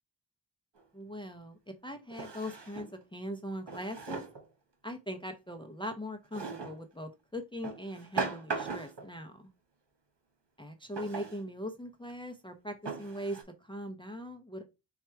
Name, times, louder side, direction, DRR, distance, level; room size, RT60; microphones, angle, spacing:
Drawer open or close, 0.8-0.9 2.1-3.0 3.7-4.4 6.3-6.8 7.6-9.1 10.9-11.4 12.1-12.2 12.8-13.4, right 4 dB, 75° right, 1.5 m, -38 dB
voice 1, 0.9-4.2 4.8-9.4 10.6-14.6, equal, 10° left, 5 dB, 0.7 m, -40 dB
4.5 x 2.4 x 4.4 m, 0.27 s
wide cardioid pair, 65°, 42 cm